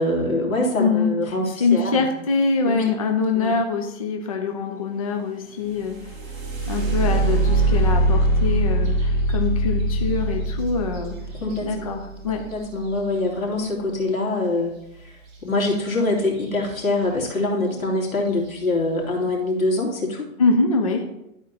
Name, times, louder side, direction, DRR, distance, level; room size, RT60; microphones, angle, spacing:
voice 1, 0.0-2.1 2.7-2.9 3.3-3.6 11.4-12.0 12.5-14.7 15.4-20.3, left 2 dB, 80° left, -1 dB, 3.1 m, -24 dB
voice 2, 0.8-1.1 1.6-6.0 6.7-11.1 11.6-12.4 20.4-21.0, left 4 dB, 30° left, 3 dB, 0.4 m, -23 dB
sound 1, 5.7-13.5 15.6-15.7 16.2-16.7 17.3-17.4 18.0-18.3, right 2 dB, 15° right, 1.6 m, -23 dB
12.0 x 4.4 x 4.2 m, 0.85 s
hypercardioid pair, 165°, 40 cm